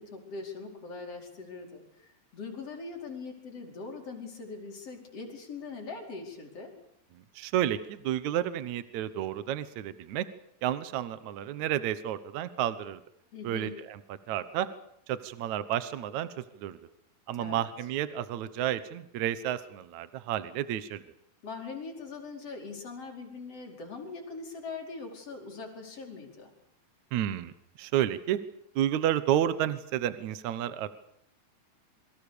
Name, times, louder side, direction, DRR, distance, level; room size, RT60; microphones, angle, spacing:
voice 1, 0.0-6.7 13.3-13.8 17.4-17.7 21.4-26.5, left 4 dB, 40° left, 1 dB, 5.8 m, -41 dB
voice 2, 7.4-10.3 10.6-13.0 13.4-14.0 14.3-14.7 15.1-16.8 17.3-21.0 27.1-27.5 27.8-28.4 28.8-30.9, right 11 dB, 65° right, 13 dB, 2.1 m, -31 dB
27.5 x 24.0 x 6.8 m, 0.74 s
omnidirectional pair, 4.3 m